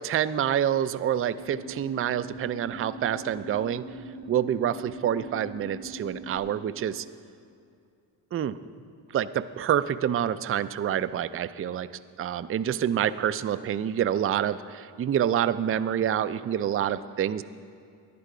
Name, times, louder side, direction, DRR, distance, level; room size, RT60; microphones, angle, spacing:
voice 1, 0.0-3.9 4.3-7.1 8.3-8.6 9.1-11.9 12.2-17.4, right 10 dB, 30° right, 13 dB, 0.3 m, -27 dB
sound 1, 1.4-6.4, right 2 dB, 70° right, 0.9 m, -42 dB
10.5 x 10.5 x 4.9 m, 2.4 s
supercardioid pair, 50°, 49 cm